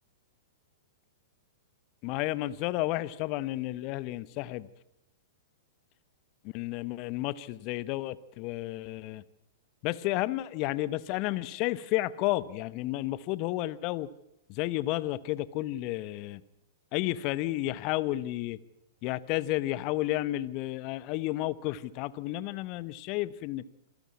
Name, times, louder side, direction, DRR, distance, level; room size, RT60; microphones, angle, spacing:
voice 1, 2.0-4.7 6.4-9.2 9.8-14.1 14.5-16.4 16.9-18.6 19.0-23.6, left 16 dB, 40° left, 18 dB, 0.8 m, -32 dB
26.0 x 13.5 x 8.4 m, 0.81 s
figure-of-eight pair, 105°, 0 cm